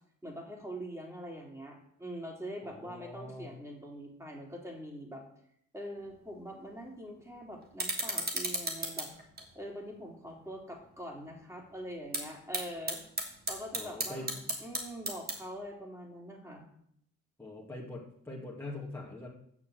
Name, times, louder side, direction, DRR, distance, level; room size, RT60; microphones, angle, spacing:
voice 1, 0.2-5.2 5.7-9.1 9.5-13.0 13.5-16.7, equal, 10° right, 0 dB, 3.6 m, -43 dB
voice 2, 2.6-3.5 13.7-14.3 17.4-19.3, left 2 dB, 10° left, -4 dB, 2.5 m, -43 dB
sound 1, 6.0-15.7, right 2 dB, 30° right, 3.0 m, -39 dB
8.7 x 6.8 x 8.0 m, 0.70 s
cardioid pair, 90°, 30 cm